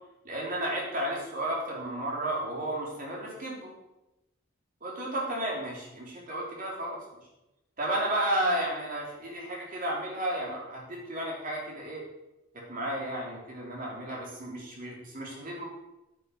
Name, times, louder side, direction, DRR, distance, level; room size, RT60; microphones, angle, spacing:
voice 1, 0.2-3.7 4.8-7.0 7.8-12.0 12.7-15.7, right 1 dB, 45° right, -3 dB, 3.6 m, -33 dB
9.3 x 8.9 x 5.8 m, 0.95 s
head